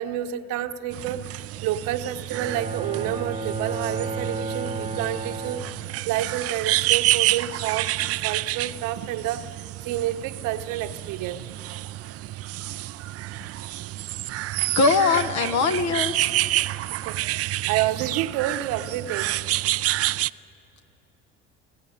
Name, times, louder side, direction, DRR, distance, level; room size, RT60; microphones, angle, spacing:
voice 1, 0.0-5.7 6.1-8.0 8.2-11.4 16.9-19.3, right 12 dB, 70° right, 7 dB, 1.1 m, -29 dB
sound 1, 0.9-20.3, right 16 dB, 50° right, 0.5 m, -29 dB
Bowed string instrument, 2.3-6.4, right 3 dB, 20° right, 1.1 m, -33 dB
voice 2, 14.7-16.3, left 4 dB, 60° left, 8 dB, 1.5 m, -21 dB
26.0 x 13.5 x 9.9 m, 3.0 s
hypercardioid pair, 70°, 32 cm